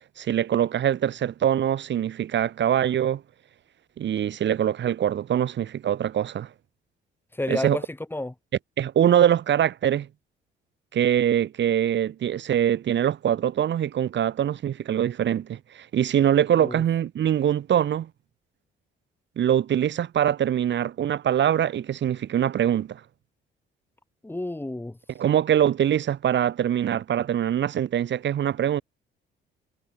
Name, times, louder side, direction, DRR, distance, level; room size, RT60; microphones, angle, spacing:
voice 1, 0.2-3.2 4.0-6.5 7.5-7.8 8.8-10.1 10.9-18.1 19.4-23.0 25.2-28.8, right 10 dB, 65° right, 3.7 m, -23 dB
voice 2, 7.3-8.3 16.5-16.8 24.2-25.0, left 1 dB, 10° left, 5.4 m, -31 dB
cardioid pair, 90°, 20 cm